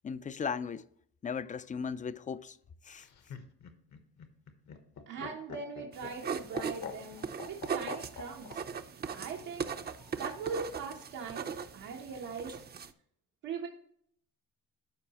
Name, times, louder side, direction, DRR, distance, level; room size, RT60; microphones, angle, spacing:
voice 1, 0.0-0.9 1.2-2.6 2.8-3.1, left 6 dB, 25° left, 0.4 m, -37 dB
Laughter, 2.9-8.6 9.9-10.5, left 7 dB, 65° left, 1.2 m, -45 dB
voice 2, 5.1-8.6 9.1-9.7 10.2-12.5 13.4-13.7, right 5 dB, 85° right, 1.2 m, -41 dB
sound 1, 5.9-12.9, right 6 dB, 35° right, 0.6 m, -39 dB
12.5 x 4.7 x 3.0 m
cardioid pair, 90°, 30 cm